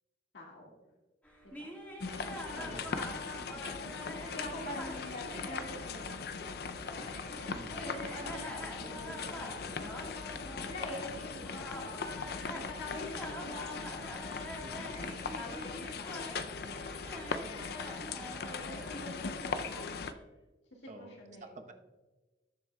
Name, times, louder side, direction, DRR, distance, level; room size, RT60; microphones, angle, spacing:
voice 1, 0.3-0.8 1.4-1.7 2.6-2.8 4.3-6.7 7.7-13.8 15.2-20.0 20.7-21.6, left 1 dB, 85° left, -2 dB, 1.8 m, -46 dB
sound 1, 1.2-20.2, equal, 10° left, 1.6 m, -46 dB
sound 2, 2.0-20.1, left 5 dB, 60° left, 0.4 m, -40 dB
voice 2, 2.6-3.0 7.5-8.2 14.6-14.9 20.9-21.2 21.4-21.7, right 1 dB, 45° right, 5 dB, 0.9 m, -50 dB
19.5 x 7.2 x 2.3 m, 1.2 s
head